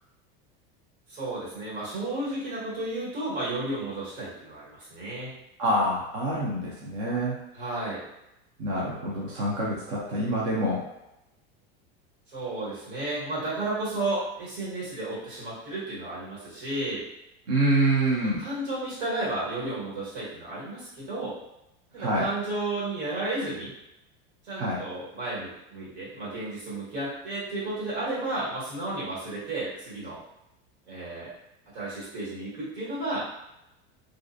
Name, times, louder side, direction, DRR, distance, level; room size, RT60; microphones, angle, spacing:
voice 1, 1.1-5.3 7.5-8.0 12.3-17.0 18.2-21.4 21.9-23.7 24.4-30.2 30.9-31.3 31.7-33.3, right 2 dB, 65° right, -7 dB, 1.4 m, -33 dB
voice 2, 5.6-7.4 8.6-10.8 17.5-18.4 21.9-22.3 24.6-24.8, right 1 dB, 30° right, -6 dB, 0.4 m, -26 dB
2.4 x 2.1 x 2.5 m, 0.89 s
supercardioid pair, 175°, 29 cm